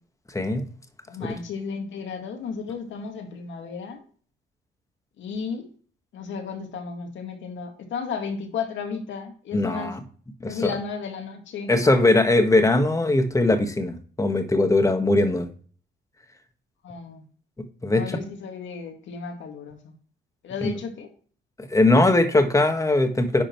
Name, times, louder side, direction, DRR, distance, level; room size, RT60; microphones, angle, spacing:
voice 1, 0.3-0.7 1.3-1.4 9.5-10.0 10.4-10.7 11.7-15.5 17.8-18.2 20.6-20.7 21.6-23.4, left 2 dB, 15° left, 7 dB, 1.4 m, -20 dB
voice 2, 1.1-4.0 5.2-5.7 6.1-9.9 10.4-11.9 16.8-17.2 17.9-19.9 20.4-21.1, left 5 dB, 70° left, 4 dB, 2.0 m, -33 dB
10.5 x 3.9 x 4.5 m, 0.43 s
cardioid pair, 90°, 20 cm